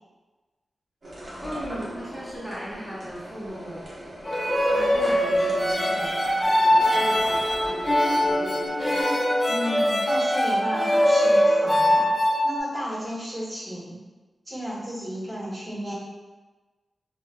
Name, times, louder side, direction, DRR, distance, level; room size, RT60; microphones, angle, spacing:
sound 1, 1.0-9.0, right 1 dB, 55° right, 0.9 m, -39 dB
voice 1, 1.4-3.8 4.7-8.8, equal, 10° left, -9 dB, 1.1 m, -37 dB
sound 2, 4.3-12.6, equal, 35° left, 0.6 m, -22 dB
voice 2, 9.5-12.2 12.4-13.9 14.5-15.9, equal, 35° right, -9 dB, 1.5 m, -33 dB
3.8 x 2.3 x 2.2 m, 1.3 s
cardioid pair, 55°, 0 cm